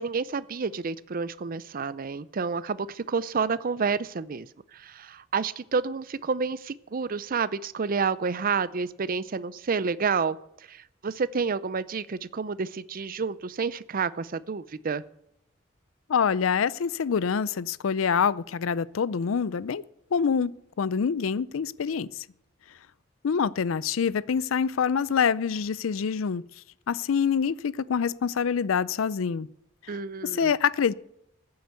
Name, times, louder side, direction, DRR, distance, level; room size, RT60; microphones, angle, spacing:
voice 1, 0.0-10.4 10.7-15.0 29.9-30.5, right 5 dB, 45° right, 17 dB, 0.5 m, -29 dB
voice 2, 16.1-19.8 20.1-20.5 20.8-22.1 23.2-26.4 26.9-29.5 30.2-30.9, left 6 dB, 85° left, 20 dB, 0.5 m, -25 dB
15.0 x 7.8 x 8.2 m, 0.79 s
head